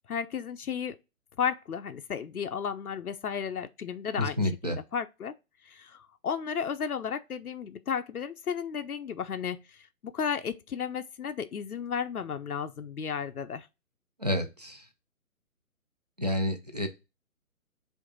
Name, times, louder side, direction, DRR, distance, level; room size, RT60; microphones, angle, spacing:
voice 1, 0.1-1.0 1.4-5.3 5.7-9.6 10.0-13.7, left 7 dB, 90° left, 0.6 m, -33 dB
voice 2, 4.2-4.8 14.2-14.8 16.2-16.9, left 1 dB, 30° right, 0.4 m, -29 dB
5.2 x 2.6 x 3.8 m
figure-of-eight pair, 140°, 43 cm